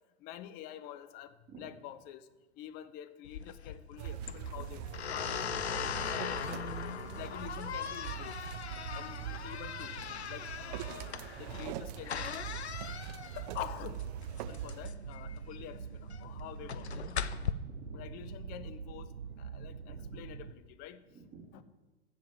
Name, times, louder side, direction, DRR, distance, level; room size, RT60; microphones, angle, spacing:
voice 1, 0.2-2.2 2.6-6.3 7.1-8.5 8.9-10.0 10.3-12.5 13.3-14.0 14.5-17.2 17.9-19.1 19.4-21.0 21.5-21.6, left 11 dB, 30° left, 13 dB, 0.6 m, -47 dB
sound 1, 3.3-17.5, left 8 dB, 80° left, 0.6 m, -40 dB
sound 2, 4.0-14.9, right 11 dB, 40° right, 0.7 m, -43 dB
sound 3, 11.3-20.5, right 6 dB, 85° right, 0.8 m, -45 dB
voice 2, 17.3-18.1 19.8-20.0 21.1-21.6, right 4 dB, 20° right, -6 dB, 3.5 m, -53 dB
14.5 x 5.1 x 7.3 m, 1.2 s
figure-of-eight pair, 105°, 33 cm